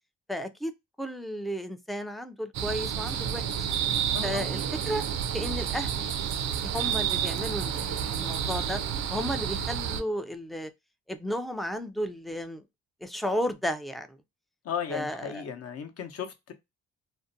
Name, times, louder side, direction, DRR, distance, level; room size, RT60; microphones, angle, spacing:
voice 1, 0.3-0.7 1.0-3.4 4.2-5.0 5.3-6.1 6.7-8.8 9.1-10.7 11.1-12.6 13.0-14.1 14.9-15.4, equal, ahead, 0.3 m, -33 dB
sound 1, 2.5-10.0, right 8 dB, 65° right, 0.5 m, -30 dB
voice 2, 4.1-4.5 14.6-16.5, left 8 dB, 50° left, 0.7 m, -35 dB
2.5 x 2.1 x 2.6 m
cardioid pair, 90°, 30 cm